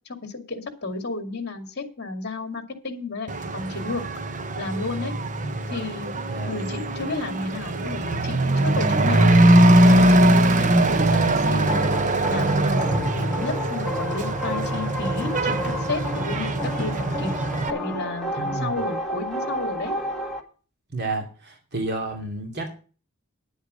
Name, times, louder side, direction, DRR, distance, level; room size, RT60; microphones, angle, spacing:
voice 1, 0.1-4.0 4.6-5.1 5.7-6.1 6.5-9.6 9.8-11.9 12.3-17.3 17.7-19.9, left 3 dB, 50° left, 7 dB, 2.3 m, -32 dB
Truck / Accelerating revving vroom, 3.3-17.7, right 1 dB, 35° right, 0.8 m, -21 dB
sound 1, 11.7-20.4, left 1 dB, ahead, 1.8 m, -31 dB
voice 2, 18.4-18.8 20.9-22.8, right 2 dB, 50° right, 3 dB, 2.6 m, -31 dB
10.5 x 8.0 x 6.3 m, 0.37 s
head